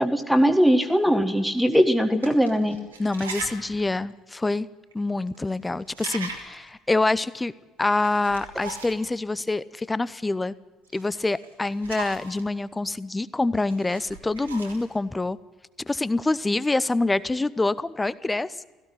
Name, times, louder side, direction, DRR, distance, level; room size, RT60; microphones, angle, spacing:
voice 1, 0.0-2.8, equal, ahead, 8 dB, 1.6 m, -20 dB
sound 1, 0.8-0.9 1.7-1.8 2.1-3.7 4.1-4.2 4.9-5.0 5.2-5.6 5.8-6.7 7.8-9.1 10.9-12.4 13.6-15.0, right 3 dB, 80° right, 2.5 m, -39 dB
voice 2, 3.0-4.7 4.9-7.5 7.8-10.5 10.9-15.4 15.9-18.7, left 2 dB, 15° left, 18 dB, 0.8 m, -26 dB
16.5 x 15.5 x 9.9 m, 1.3 s
figure-of-eight pair, 55°, 0 cm